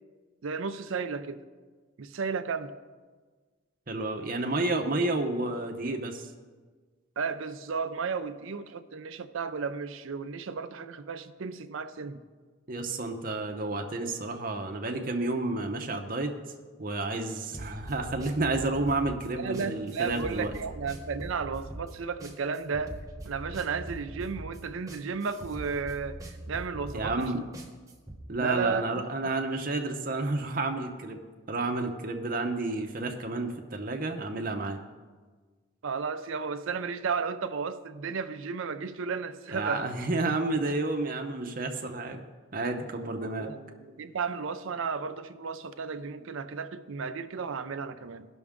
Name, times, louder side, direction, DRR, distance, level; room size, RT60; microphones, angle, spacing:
voice 1, 0.4-1.4 2.0-2.7 7.2-12.2 19.4-23.0 23.2-27.3 28.4-29.0 35.8-39.8 43.2-48.3, right 5 dB, 70° right, 10 dB, 0.5 m, -33 dB
voice 2, 3.9-6.3 12.7-16.3 16.8-20.5 26.9-27.4 28.3-31.2 31.5-34.8 39.5-42.2 42.5-43.5, right 2 dB, 40° right, 4 dB, 0.8 m, -30 dB
sound 1, 17.5-28.2, right 1 dB, 15° right, 0.9 m, -42 dB
15.5 x 6.2 x 3.6 m, 1.4 s
head